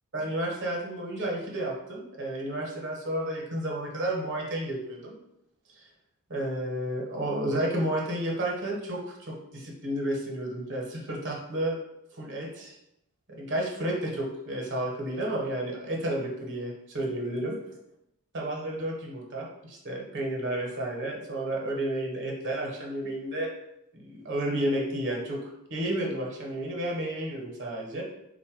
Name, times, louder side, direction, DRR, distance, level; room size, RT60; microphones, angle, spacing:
voice 1, 0.1-5.2 6.3-11.8 12.2-12.7 13.3-17.5 18.3-23.5 23.9-28.0, right 1 dB, 55° right, -1 dB, 0.9 m, -31 dB
3.9 x 2.2 x 4.5 m, 0.83 s
head